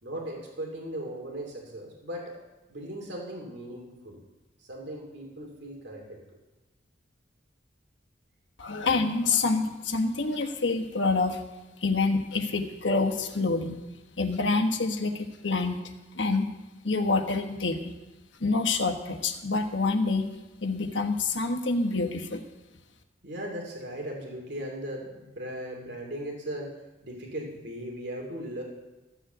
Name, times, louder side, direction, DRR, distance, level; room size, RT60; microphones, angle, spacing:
voice 1, 0.0-2.3 2.7-4.2 4.6-6.2 23.2-26.7 27.0-28.6, right 1 dB, 65° right, 0 dB, 2.8 m, -38 dB
voice 2, 8.6-11.4 11.8-13.8 14.2-15.8 16.1-16.5 16.8-17.9 18.4-20.3 20.6-22.4, left 3 dB, 80° left, 4 dB, 1.3 m, -27 dB
14.0 x 7.5 x 7.9 m, 1.1 s
head